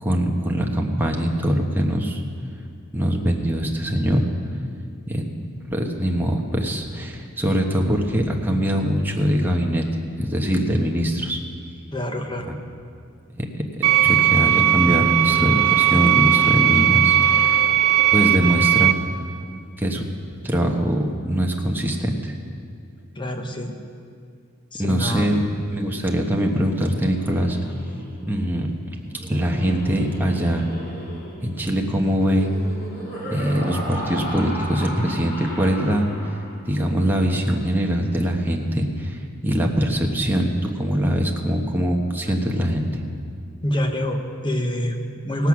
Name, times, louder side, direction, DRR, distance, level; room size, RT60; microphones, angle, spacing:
voice 1, 0.0-2.2 2.9-4.2 5.1-9.9 10.2-11.4 13.4-17.6 18.1-18.9 19.8-20.0 20.4-22.3 24.8-25.4 25.7-27.6 28.3-28.7 29.3-30.7 31.4-32.5 33.3-36.1 36.7-43.0, equal, 10° right, 1 dB, 1.1 m, -22 dB
voice 2, 11.9-12.5 23.1-23.8 24.7-25.3 43.6-45.5, equal, 20° left, 5 dB, 1.0 m, -26 dB
sound 1, 13.8-18.9, right 12 dB, 85° right, 0.6 m, -18 dB
Laughter, 26.3-36.8, equal, 45° left, 2.5 m, -36 dB
17.5 x 7.9 x 6.0 m, 2.3 s
head